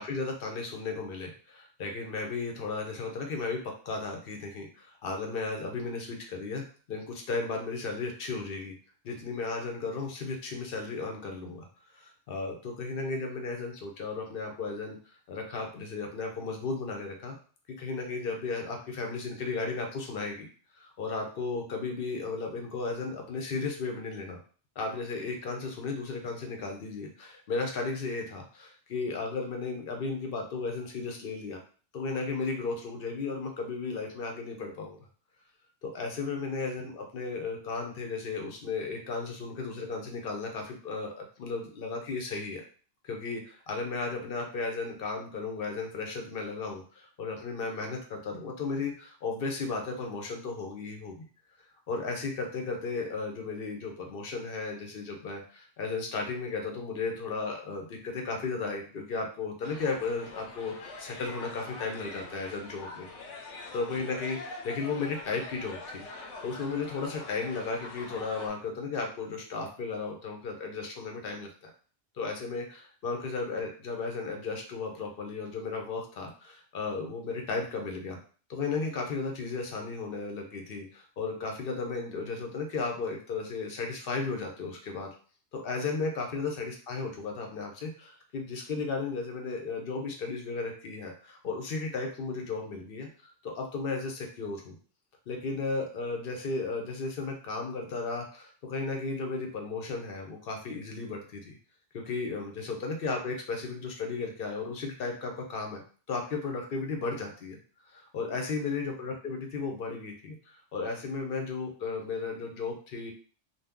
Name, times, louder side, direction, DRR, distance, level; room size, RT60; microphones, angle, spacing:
voice 1, 0.0-3.6 3.9-6.6 6.9-8.7 9.0-11.7 11.9-15.0 15.3-17.4 17.8-20.5 20.7-24.4 24.8-31.6 31.9-35.0 35.8-42.6 43.0-51.2 51.9-63.1 63.7-71.7 72.2-78.2 78.5-85.1 85.5-94.8 95.3-101.6 101.9-105.8 106.1-107.6 107.9-113.1, left 4 dB, 55° left, 2 dB, 0.8 m, -35 dB
sound 1, 59.6-68.5, left 3 dB, 80° left, 1.0 m, -44 dB
2.7 x 2.3 x 3.5 m, 0.41 s
omnidirectional pair, 1.2 m